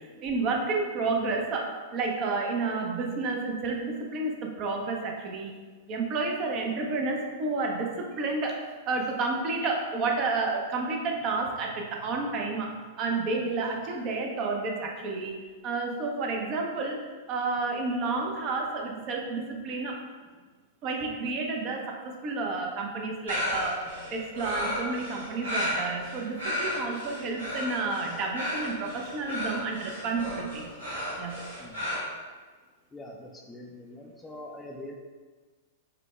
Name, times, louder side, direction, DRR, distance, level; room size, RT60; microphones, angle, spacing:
voice 1, 0.0-5.5 5.8-15.4 15.6-17.0 17.3-20.0 20.8-30.7 31.2-31.4, right 3 dB, 35° right, 1 dB, 0.6 m, -30 dB
sound 1, 23.3-32.0, left 1 dB, 80° right, 1.4 m, -33 dB
voice 2, 32.9-34.9, left 1 dB, 10° left, 0 dB, 0.4 m, -43 dB
3.9 x 2.2 x 3.1 m, 1.4 s
figure-of-eight pair, 100°, 0 cm